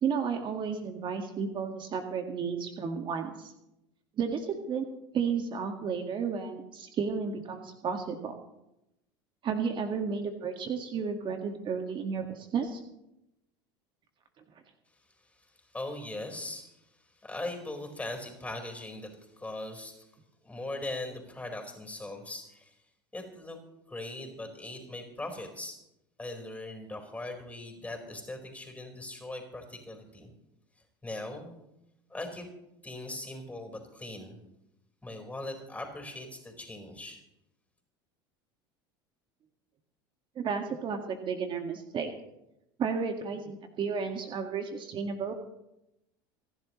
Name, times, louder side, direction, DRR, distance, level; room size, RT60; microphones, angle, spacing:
voice 1, 0.0-3.5 4.2-4.9 5.1-8.3 9.4-12.8 40.4-42.1 42.8-45.3, right 6 dB, 40° right, 5 dB, 1.8 m, -32 dB
voice 2, 15.4-16.7 17.1-20.0 20.4-22.8 23.1-23.6 23.9-25.8 26.2-30.3 31.0-31.6 32.1-32.5 32.8-34.4 35.0-37.2, left 2 dB, 10° left, 3 dB, 4.6 m, -40 dB
27.0 x 11.0 x 3.1 m, 0.88 s
hypercardioid pair, 80°, 12 cm